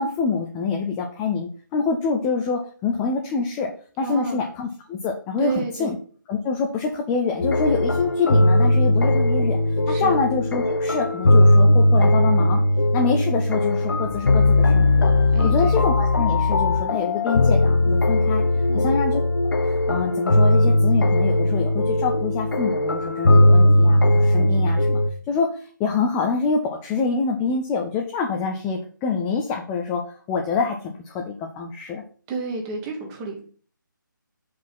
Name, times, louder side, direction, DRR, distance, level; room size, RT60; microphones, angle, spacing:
voice 1, 0.0-3.7 4.0-6.0 6.3-12.6 12.9-15.1 15.4-18.4 18.7-19.2 19.9-25.0 25.3-32.0, left 5 dB, 10° left, 2 dB, 0.3 m, -26 dB
voice 2, 4.0-4.4 5.4-5.9 9.9-10.2 15.3-15.8 18.7-19.0 32.3-33.4, right 3 dB, 15° right, 3 dB, 1.3 m, -31 dB
sound 1, 7.4-25.1, left 1 dB, 75° left, 0.9 m, -18 dB
5.5 x 5.0 x 5.9 m, 0.43 s
figure-of-eight pair, 160°, 11 cm